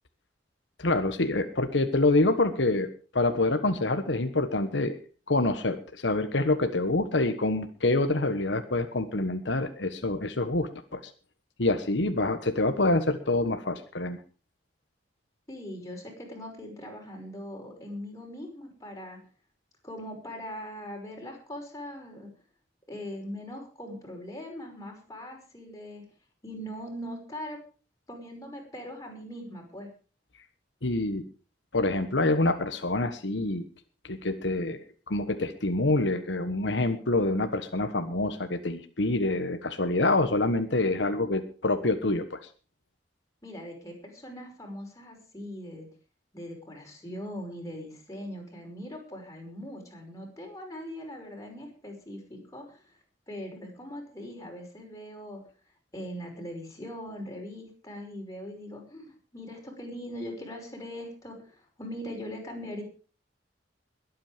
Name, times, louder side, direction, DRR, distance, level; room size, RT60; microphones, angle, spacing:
voice 1, 0.8-5.0 5.3-11.0 11.6-14.2 30.8-31.2 31.7-33.7 34.0-42.4, left 2 dB, 85° left, 8 dB, 1.4 m, -26 dB
voice 2, 15.5-19.2 19.8-22.3 22.9-26.0 26.4-27.6 28.1-29.9 43.4-45.9 46.3-52.9 53.3-55.4 55.9-62.8, equal, 20° left, 0 dB, 5.6 m, -41 dB
21.5 x 8.8 x 5.1 m, 0.37 s
head